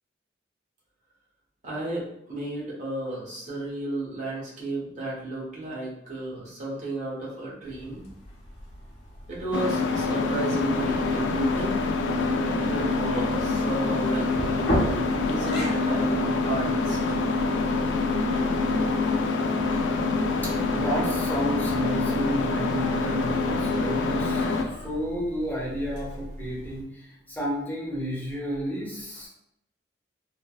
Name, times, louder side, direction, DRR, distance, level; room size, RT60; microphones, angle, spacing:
voice 1, 1.6-8.0 9.3-11.7 12.4-17.0, right 2 dB, 45° right, -5 dB, 0.9 m, -33 dB
sound 1, 7.6-26.8, equal, 65° left, 0.7 m, -37 dB
sound 2, 9.5-24.6, left 3 dB, 90° left, 0.3 m, -26 dB
voice 2, 20.4-29.3, equal, 10° left, -5 dB, 0.8 m, -32 dB
3.2 x 2.1 x 2.3 m, 0.80 s
head